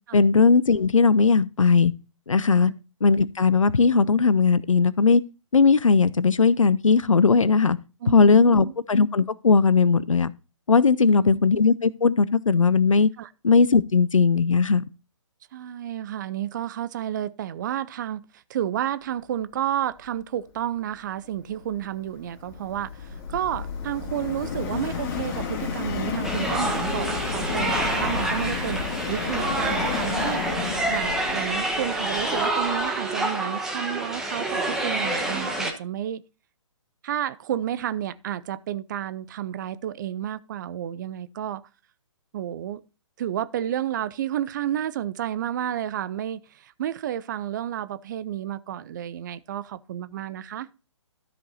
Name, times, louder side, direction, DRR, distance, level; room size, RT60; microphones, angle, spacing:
voice 1, 0.1-1.9 2.3-2.7 3.0-5.2 5.5-7.8 8.1-10.3 10.7-13.1 13.4-14.8, left 5 dB, 85° left, 0.6 m, -18 dB
voice 2, 8.0-8.7 11.0-11.4 13.2-13.3 15.5-30.4 30.9-36.2 37.0-41.7 42.3-42.8 43.2-50.7, right 11 dB, 35° right, 0.5 m, -31 dB
Subway metro underground, 21.5-32.8, left 5 dB, 30° left, 2.3 m, -32 dB
sound 1, 26.2-35.7, right 2 dB, 5° right, 1.0 m, -27 dB
13.0 x 5.2 x 4.0 m
figure-of-eight pair, 135°, 16 cm